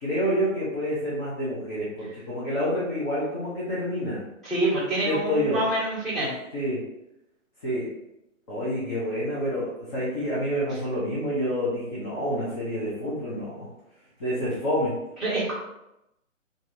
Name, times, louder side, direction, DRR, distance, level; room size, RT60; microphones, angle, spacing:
voice 1, 0.0-4.2 5.0-5.6 6.5-6.8 7.6-7.9 8.5-13.7 14.2-14.9, equal, 20° left, -9 dB, 0.6 m, -28 dB
voice 2, 4.4-6.3 15.2-15.5, right 1 dB, ahead, -13 dB, 1.4 m, -26 dB
2.8 x 2.6 x 2.6 m, 0.87 s
hypercardioid pair, 140°, 40 cm